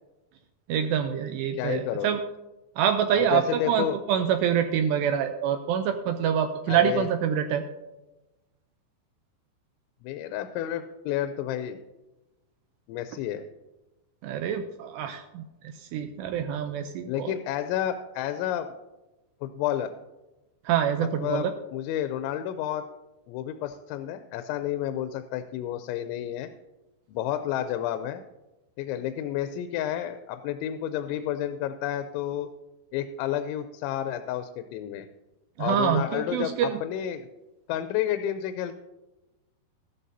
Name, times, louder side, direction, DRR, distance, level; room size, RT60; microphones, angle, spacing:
voice 1, 0.7-2.2 2.8-7.6 14.2-15.4 15.8-17.3 20.7-21.5 35.6-36.8, right 9 dB, 80° right, 7 dB, 2.5 m, -26 dB
voice 2, 1.5-2.2 3.2-4.0 6.7-7.1 10.0-11.8 12.9-13.5 17.1-18.7 19.4-19.9 21.0-22.8 23.3-26.5 27.1-28.2 28.8-32.5 32.9-35.1 35.6-37.3 37.7-38.7, left 11 dB, 90° left, 9 dB, 2.9 m, -30 dB
14.5 x 12.5 x 2.7 m, 1.0 s
omnidirectional pair, 5.3 m